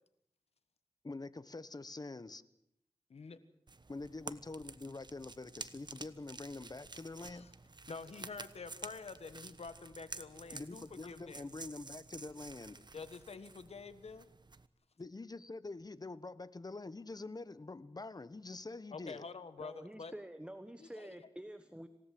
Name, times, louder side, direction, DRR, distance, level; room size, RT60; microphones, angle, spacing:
voice 1, 1.0-2.4 3.9-7.5 10.5-12.8 15.0-19.2, left 3 dB, 40° left, 15 dB, 1.1 m, -46 dB
sound 1, 3.7-14.7, right 3 dB, 45° right, 1.2 m, -51 dB
voice 2, 7.9-11.4 12.9-14.3 18.9-20.1 20.8-21.2, left 4 dB, 85° left, 12 dB, 1.5 m, -48 dB
voice 3, 19.6-21.9, right 1 dB, 10° right, 9 dB, 1.4 m, -48 dB
27.0 x 17.5 x 7.7 m, 0.76 s
wide cardioid pair, 70°, 10 cm